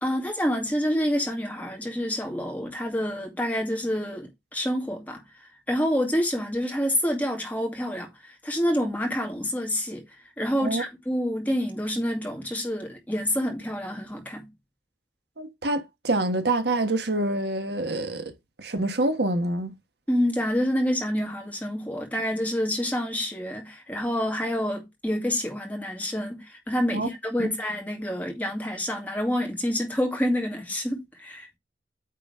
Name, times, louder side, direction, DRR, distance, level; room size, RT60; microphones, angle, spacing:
voice 1, 0.0-10.0 10.4-14.5 20.1-31.6, equal, 10° left, 2.3 m, -28 dB
voice 2, 15.4-18.3 18.6-19.7 26.9-27.1 27.4-27.5, right 2 dB, 70° right, 1.3 m, -26 dB
9.0 x 3.9 x 4.8 m
head